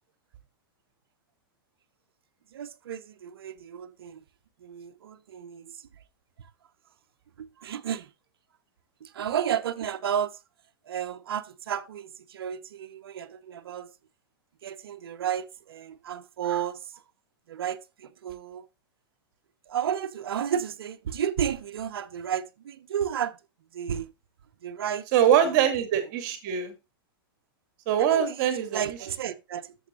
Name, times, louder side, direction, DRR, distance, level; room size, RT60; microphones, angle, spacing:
voice 1, 2.5-4.2 4.6-5.9 6.4-6.5 7.4-8.1 9.0-10.4 10.9-13.9 14.6-17.0 17.5-18.7 19.7-23.4 23.7-24.1 24.6-25.1 25.4-25.6 28.0-29.8, right 9 dB, 80° right, 1.0 m, -32 dB
voice 2, 25.1-26.7 27.9-28.8, right 9 dB, 50° right, 2.4 m, -23 dB
13.5 x 7.2 x 2.5 m
hypercardioid pair, 125°, 12 cm